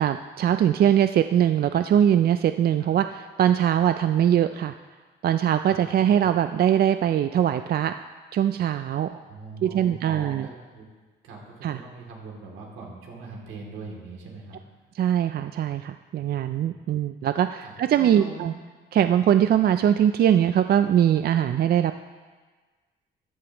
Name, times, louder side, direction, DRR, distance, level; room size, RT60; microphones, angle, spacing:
voice 1, 0.0-4.7 5.2-7.9 8.3-9.1 9.6-10.5 11.6-11.8 15.0-18.5 18.9-22.0, right 10 dB, 50° right, 9 dB, 0.4 m, -22 dB
voice 2, 9.1-10.9 11.2-14.6 16.3-17.0 17.6-18.5, right 3 dB, 85° right, -1 dB, 2.7 m, -41 dB
14.0 x 11.0 x 3.0 m, 1.4 s
cardioid pair, 90°, 20 cm